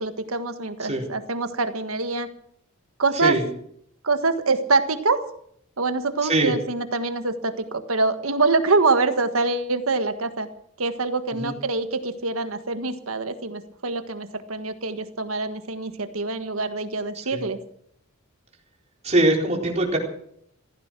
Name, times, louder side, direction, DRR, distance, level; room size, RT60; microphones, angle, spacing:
voice 1, 0.0-2.3 3.0-3.3 4.0-5.2 5.8-10.5 10.8-17.6, right 3 dB, 75° right, 9 dB, 1.6 m, -25 dB
voice 2, 6.2-6.5 11.4-11.5 17.1-17.4 19.0-20.0, right 2 dB, 35° right, 0 dB, 4.2 m, -22 dB
15.5 x 15.0 x 6.1 m, 0.69 s
head